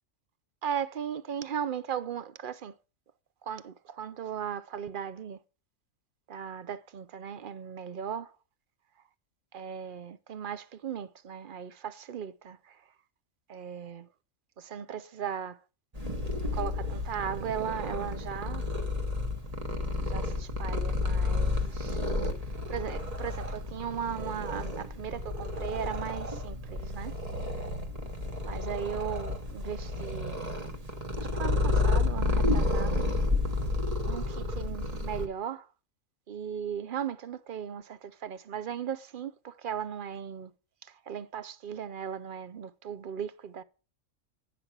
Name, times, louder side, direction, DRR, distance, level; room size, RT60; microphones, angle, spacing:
voice 1, 0.6-2.7 3.4-5.4 6.3-8.3 9.5-12.8 13.5-14.1 14.6-15.6 16.5-18.7 20.1-22.0 22.7-27.1 28.4-30.4 31.2-33.0 34.1-35.7 36.3-40.5 41.1-43.6, right 8 dB, 50° right, 0.7 m, -37 dB
Purr, 15.9-35.3, left 2 dB, 30° right, 1.3 m, -31 dB
9.5 x 5.9 x 7.2 m
omnidirectional pair, 1.4 m